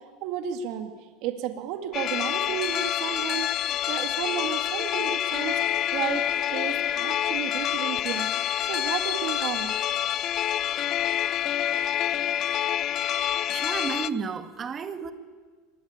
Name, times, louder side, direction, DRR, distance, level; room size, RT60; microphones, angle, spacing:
voice 1, 0.2-0.9 1.2-6.2 6.5-9.7, right 10 dB, 60° right, 6 dB, 2.3 m, -33 dB
sound 1, 1.9-14.1, left 11 dB, 40° left, 0.8 m, -27 dB
voice 2, 13.5-15.1, right 6 dB, 25° right, 8 dB, 2.1 m, -32 dB
24.5 x 20.5 x 8.9 m, 1.4 s
supercardioid pair, 125°, 0 cm